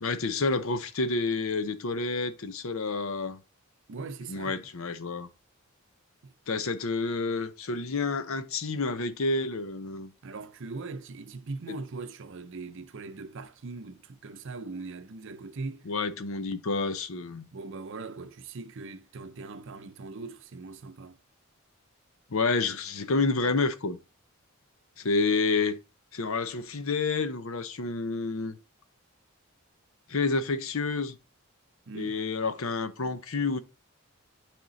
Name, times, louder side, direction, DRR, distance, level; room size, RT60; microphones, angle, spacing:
voice 1, 0.0-3.4 4.3-5.3 6.5-10.1 11.7-11.8 15.9-17.5 22.3-24.0 25.0-25.8 26.1-28.5 30.1-31.2 31.9-33.6, left 3 dB, 70° left, 0.7 m, -29 dB
voice 2, 3.9-4.7 6.2-6.3 10.2-15.8 17.5-21.2 31.9-32.2, right 3 dB, 60° right, 0.6 m, -40 dB
9.0 x 3.6 x 4.0 m
head